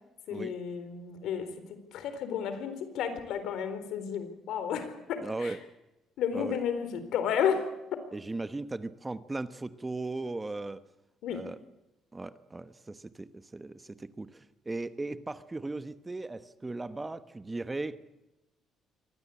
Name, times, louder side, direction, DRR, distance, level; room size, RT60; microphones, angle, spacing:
voice 1, 0.3-1.5 1.9-5.5 6.2-7.7 11.2-11.4, left 8 dB, 80° left, 10 dB, 4.1 m, -32 dB
voice 2, 5.2-5.6 6.3-6.6 8.1-10.8 11.3-11.6 12.1-18.0, right 2 dB, 15° right, 12 dB, 1.1 m, -37 dB
24.0 x 18.0 x 8.6 m, 0.97 s
cardioid pair, 115°, 0 cm